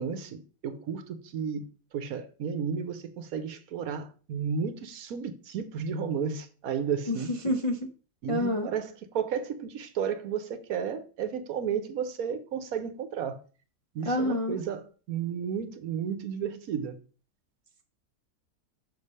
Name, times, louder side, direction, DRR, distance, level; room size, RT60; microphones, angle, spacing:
voice 1, 0.0-1.7 1.9-7.3 8.2-13.4 13.9-16.9, right 7 dB, 70° right, 1.2 m, -33 dB
voice 2, 7.1-7.8 8.3-8.7 14.0-14.6, left 1 dB, 40° left, 0.5 m, -28 dB
6.5 x 3.3 x 5.4 m
omnidirectional pair, 1.7 m